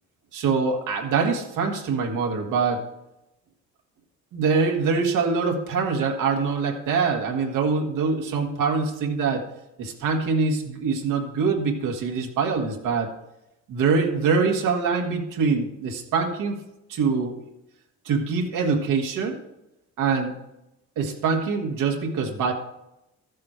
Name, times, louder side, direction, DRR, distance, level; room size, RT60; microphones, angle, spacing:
voice 1, 0.3-2.9 4.3-9.4 9.8-13.1 13.7-16.6 16.9-17.3 18.0-19.4 20.0-20.3 21.0-22.5, right 5 dB, 85° right, 1 dB, 1.7 m, -24 dB
13.0 x 7.5 x 4.5 m, 0.89 s
cardioid pair, 90°, 30 cm